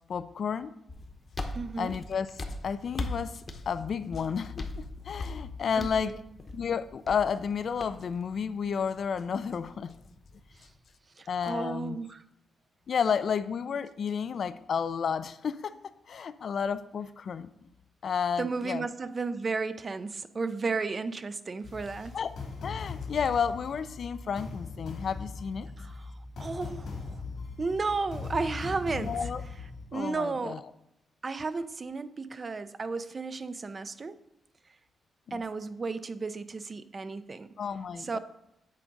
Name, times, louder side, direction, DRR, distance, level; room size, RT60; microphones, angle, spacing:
voice 1, 0.1-0.7 1.8-2.3 2.6-4.7 5.0-6.2 6.5-9.9 11.3-12.0 12.9-15.7 16.1-17.5 18.0-18.9 22.1-22.3 22.6-25.7 29.0-29.4 29.9-30.6 35.3-35.4 37.6-38.2, left 6 dB, 55° left, 13 dB, 0.3 m, -31 dB
sound 1, 0.9-10.8, left 1 dB, 30° left, 0.8 m, -41 dB
voice 2, 1.5-1.9 5.8-6.2 11.2-12.2 18.4-22.1 25.8-26.1 26.4-27.2 27.6-29.3 29.9-30.6 31.2-34.2 35.3-37.5 38.0-38.2, right 4 dB, 30° right, 13 dB, 0.4 m, -33 dB
sound 2, 21.6-29.9, left 4 dB, 75° left, 2.1 m, -40 dB
8.5 x 3.6 x 5.1 m, 0.81 s
cardioid pair, 125°, 0 cm